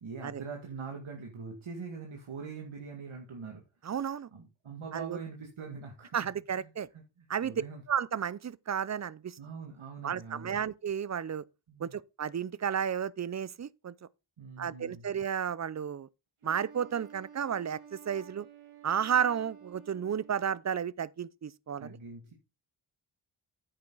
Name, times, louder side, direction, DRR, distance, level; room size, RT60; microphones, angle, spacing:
voice 1, 0.0-3.6 4.3-6.2 6.5-7.8 9.4-10.6 11.7-11.9 14.4-15.1 21.8-22.3, right 5 dB, 70° right, 2.0 m, -43 dB
voice 2, 3.8-4.3 4.9-5.2 6.1-6.9 7.3-7.5 7.9-9.4 10.0-11.4 11.8-13.9 14.6-16.1 16.4-18.5 18.8-21.9, right 8 dB, 35° right, 0.5 m, -32 dB
Wind instrument woodwind instrument, 16.4-20.7, right 8 dB, 90° right, 2.4 m, -52 dB
9.1 x 7.6 x 3.9 m
wide cardioid pair, 70°, 49 cm